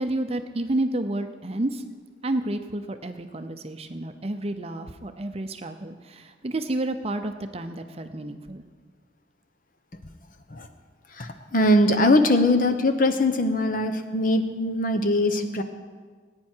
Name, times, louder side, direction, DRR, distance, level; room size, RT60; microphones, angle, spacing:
voice 1, 0.0-1.8 2.2-8.6, right 1 dB, 30° right, 8 dB, 0.6 m, -30 dB
voice 2, 11.2-15.6, left 1 dB, 45° left, 8 dB, 0.9 m, -21 dB
19.0 x 9.5 x 4.5 m, 1.5 s
head